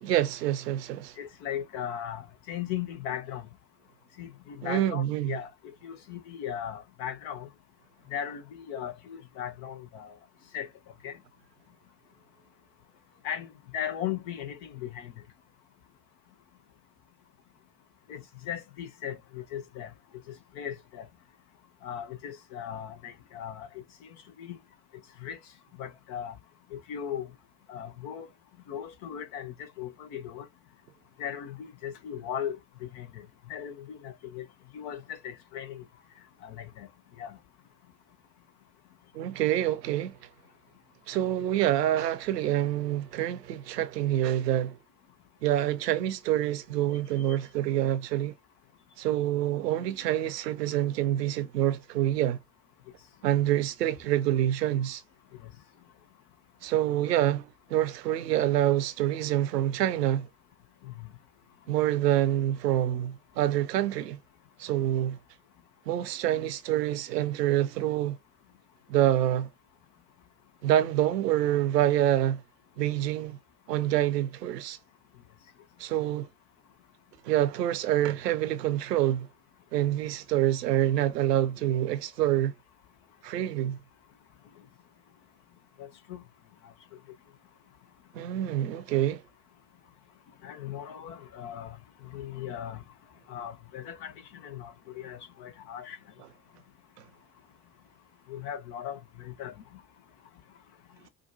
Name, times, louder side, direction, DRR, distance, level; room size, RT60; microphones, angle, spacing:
voice 1, 0.0-1.2 4.6-5.4 39.1-40.2 41.1-44.8 45.4-48.3 49.0-52.4 53.2-55.0 56.6-60.3 61.7-64.2 64.6-65.2 65.9-68.2 68.9-69.5 70.6-72.4 72.8-73.4 73.7-74.8 75.8-76.3 77.2-79.3 79.7-82.5 83.2-83.8 88.1-89.2, right 12 dB, 85° right, 0.6 m, -26 dB
voice 2, 1.2-2.2 2.5-3.4 4.2-5.5 5.8-7.5 8.1-10.1 10.5-10.7 11.0-11.2 13.2-13.5 13.7-15.1 18.1-19.9 20.6-21.0 21.8-23.7 24.4-24.6 25.2-25.4 25.8-26.3 26.7-27.3 27.7-28.3 28.7-30.5 31.2-33.2 33.5-33.8 34.0-34.4 34.7-35.8 36.4-36.9 37.2-37.3 60.8-61.1 85.8-86.2 90.4-91.8 92.1-92.8 93.3-96.0 98.3-99.5, left 9 dB, 70° left, 1.1 m, -37 dB
4.9 x 2.3 x 2.6 m
hypercardioid pair, 50°, 47 cm